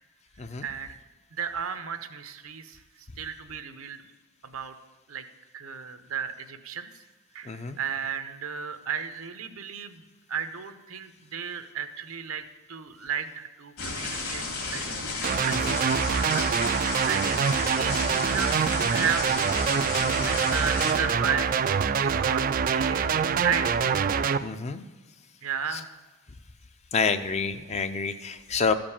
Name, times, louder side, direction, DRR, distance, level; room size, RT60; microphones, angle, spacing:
voice 1, 0.6-0.9 1.3-2.8 3.2-4.1 4.4-4.7 5.1-5.2 5.5-6.9 7.3-10.0 10.3-14.8 15.4-19.3 20.2-21.5 22.0-22.4 22.7-23.7 25.4-25.9, right 7 dB, 75° right, 9 dB, 0.8 m, -34 dB
voice 2, 7.5-7.8 15.7-15.8 24.4-24.8 26.9-28.7, left 5 dB, 30° left, 10 dB, 0.5 m, -28 dB
sound 1, 13.8-20.9, left 3 dB, 70° left, 2.4 m, -33 dB
sound 2, 15.2-24.4, right 6 dB, 40° right, 0.3 m, -25 dB
13.5 x 5.2 x 7.1 m, 1.2 s
head